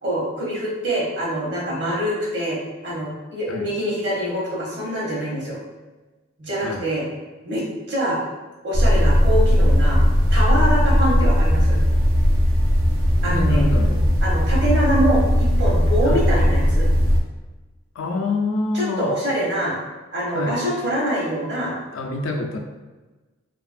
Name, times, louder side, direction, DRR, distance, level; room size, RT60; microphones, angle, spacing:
voice 1, 0.0-5.6 6.4-7.0 7.4-8.2 8.6-10.0 10.3-11.8 13.2-13.7 14.2-16.9 18.7-19.7 20.1-21.7, equal, 60° right, -5 dB, 0.9 m, -24 dB
sound 1, 8.7-17.2, equal, 90° right, 0.5 m, -17 dB
voice 2, 13.2-14.1 16.0-16.3 17.9-19.2 20.3-20.6 21.9-22.6, left 2 dB, 85° left, 3 dB, 0.4 m, -26 dB
2.7 x 2.4 x 2.5 m, 1.2 s
head